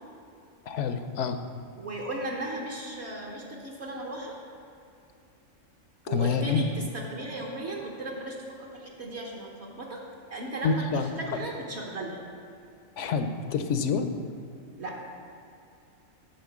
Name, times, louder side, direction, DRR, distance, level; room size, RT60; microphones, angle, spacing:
voice 1, 0.7-1.4 6.0-6.6 10.6-11.5 13.0-14.1, left 5 dB, 70° left, 8 dB, 0.9 m, -28 dB
voice 2, 1.8-4.4 6.1-10.0 10.3-12.2 14.8-15.0, right 1 dB, 60° right, -2 dB, 1.2 m, -36 dB
9.5 x 4.3 x 7.1 m, 2.7 s
omnidirectional pair, 1.3 m